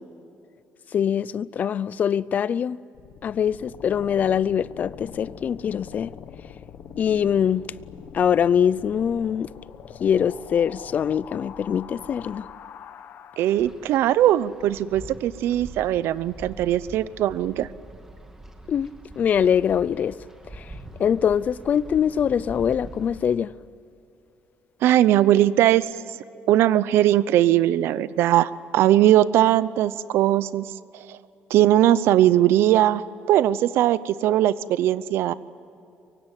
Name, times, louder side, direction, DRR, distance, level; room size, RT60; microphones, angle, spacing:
voice 1, 0.9-2.8 3.2-6.1 7.0-7.7 8.1-9.5 10.0-12.5 18.7-18.9 19.2-20.2 20.5-20.7 21.0-23.5, left 8 dB, 40° left, 0.5 m, -23 dB
sound 1, 2.9-13.9, left 8 dB, 60° left, 1.5 m, -43 dB
voice 2, 13.4-17.7 24.8-25.9 26.5-30.7 31.1-31.2 31.5-33.0 33.3-35.3, right 13 dB, 80° right, 0.8 m, -20 dB
Wind, 13.6-23.3, right 1 dB, 10° right, 2.1 m, -44 dB
24.0 x 23.5 x 9.1 m
cardioid pair, 150°, 4 cm